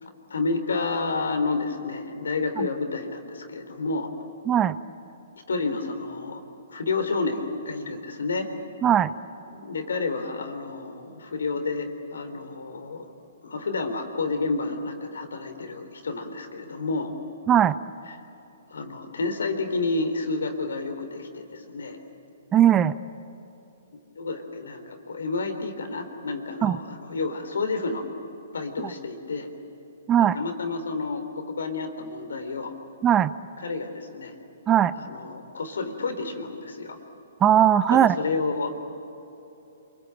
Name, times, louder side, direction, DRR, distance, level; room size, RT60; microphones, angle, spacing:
voice 1, 0.0-4.1 5.5-6.4 6.7-8.5 9.5-13.1 13.4-17.1 18.7-22.0 24.2-28.0 28.5-29.5 30.3-32.7 33.6-34.3 34.9-37.0 37.9-38.8, left 3 dB, 75° left, 8 dB, 3.6 m, -30 dB
voice 2, 8.8-9.1 17.5-17.8 22.5-23.0 26.6-26.8 28.8-28.9 30.1-30.4 33.0-33.3 34.7-34.9 37.4-38.1, right 10 dB, 20° right, 16 dB, 0.7 m, -19 dB
28.5 x 22.5 x 9.0 m, 3.0 s
hypercardioid pair, 125°, 0 cm